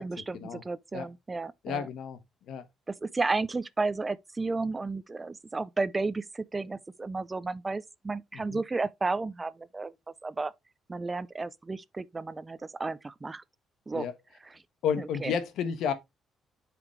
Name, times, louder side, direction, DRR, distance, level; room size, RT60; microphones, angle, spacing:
voice 1, 0.0-1.9 2.9-9.9 10.2-10.5 10.9-13.4 13.9-14.1 14.4-14.6 15.0-15.3, right 3 dB, 25° right, 0.5 m, -33 dB
voice 2, 1.6-2.2 2.5-2.6 8.3-8.6 13.9-14.1 14.8-15.9, left 7 dB, 80° left, 1.3 m, -31 dB
8.3 x 5.1 x 3.1 m
cardioid pair, 90°, 0 cm